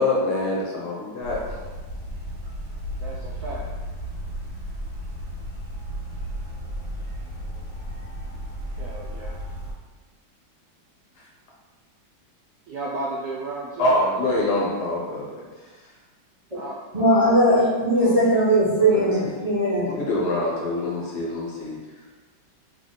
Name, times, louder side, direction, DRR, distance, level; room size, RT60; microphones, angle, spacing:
voice 1, 0.0-1.6 11.2-11.3 13.8-15.9 18.9-19.3 19.9-21.8, left 2 dB, 60° left, -3 dB, 1.3 m, -25 dB
sound 1, 1.2-9.7, equal, 40° left, 1.6 m, -34 dB
voice 2, 3.0-3.7 8.8-9.4 12.7-13.9 16.5-17.4 17.9-18.5 18.8-19.2, right 2 dB, 75° right, -4 dB, 0.9 m, -34 dB
voice 3, 16.9-19.9 20.4-20.5, right 1 dB, 35° right, -10 dB, 0.6 m, -19 dB
3.9 x 3.3 x 3.7 m, 1.3 s
omnidirectional pair, 2.2 m